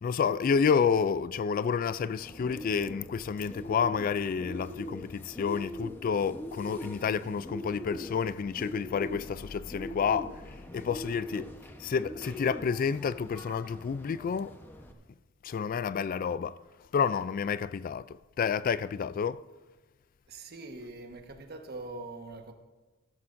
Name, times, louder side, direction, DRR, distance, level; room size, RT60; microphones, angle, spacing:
voice 1, 0.0-10.4 10.7-11.5 11.8-14.5 15.4-16.6 16.9-19.4, left 6 dB, 45° left, 0.3 m, -29 dB
Bird, 2.2-14.9, left 1 dB, 10° left, 0.9 m, -42 dB
voice 2, 20.3-22.5, right 2 dB, 55° right, 1.3 m, -43 dB
15.5 x 13.5 x 2.6 m
head